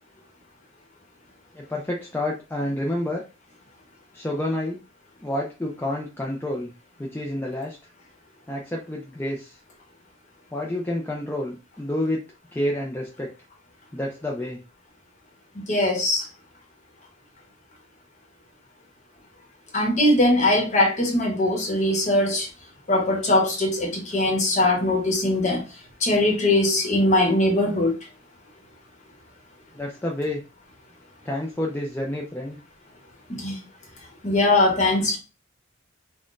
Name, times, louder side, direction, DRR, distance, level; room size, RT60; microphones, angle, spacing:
voice 1, 1.5-3.2 4.1-4.8 5.2-6.7 7.0-7.8 8.5-9.6 10.5-12.2 12.5-13.3 13.9-14.6 29.7-30.4 31.2-32.6, left 1 dB, 10° left, 0.4 m, -29 dB
voice 2, 15.5-16.3 19.7-22.5 22.9-25.6 26.0-27.9 33.3-33.6 34.2-35.2, left 1 dB, 35° left, 0.9 m, -21 dB
3.8 x 2.2 x 2.5 m
head